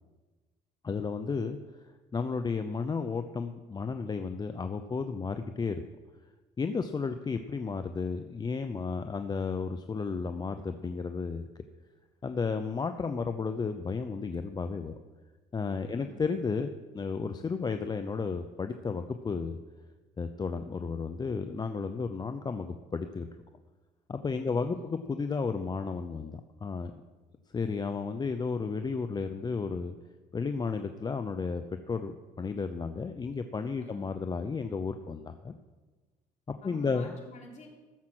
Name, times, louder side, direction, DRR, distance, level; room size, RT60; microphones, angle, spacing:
voice 1, 0.8-1.6 2.1-5.8 6.6-11.4 12.2-14.9 15.5-19.6 20.2-23.3 24.1-26.9 27.5-29.9 30.3-35.5 36.6-37.1, left 5 dB, 25° left, 8 dB, 0.6 m, -33 dB
voice 2, 24.4-24.9 33.8-34.1 36.6-37.7, left 2 dB, 45° left, -1 dB, 3.3 m, -50 dB
14.5 x 7.3 x 6.1 m, 1.3 s
cardioid pair, 110°, 17 cm